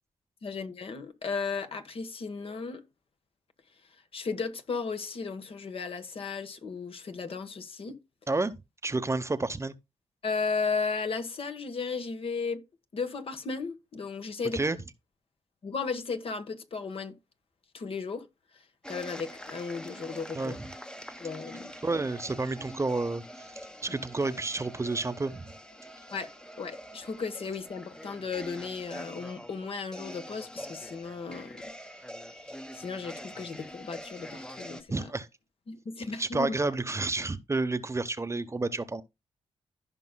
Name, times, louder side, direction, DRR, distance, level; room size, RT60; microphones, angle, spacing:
voice 1, 0.4-2.8 4.1-8.0 10.2-12.6 12.9-14.6 15.6-17.2 17.7-18.3 18.5-18.6 18.9-20.6 21.2-21.7 26.1-26.3 26.6-31.7 32.3-35.1 35.7-36.6, left 4 dB, 55° left, 1.2 m, -35 dB
voice 2, 8.8-9.7 14.5-14.8 20.3-20.5 21.8-23.2 23.8-25.5 34.9-35.3 36.2-39.0, right 3 dB, 25° right, 0.8 m, -30 dB
sound 1, 18.8-34.8, equal, 5° left, 0.8 m, -45 dB
15.0 x 5.3 x 2.2 m
cardioid pair, 60°, 11 cm